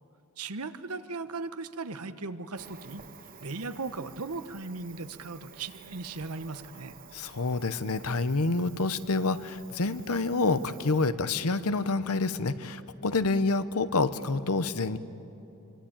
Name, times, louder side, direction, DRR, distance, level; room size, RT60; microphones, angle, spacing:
voice 1, 0.4-3.0 3.4-6.9, right 3 dB, 80° right, 11 dB, 1.2 m, -37 dB
Cricket, 2.5-11.1, right 6 dB, 40° right, 1.3 m, -51 dB
voice 2, 7.1-15.0, left 3 dB, 80° left, 13 dB, 1.0 m, -28 dB
25.5 x 24.0 x 8.9 m, 3.0 s
head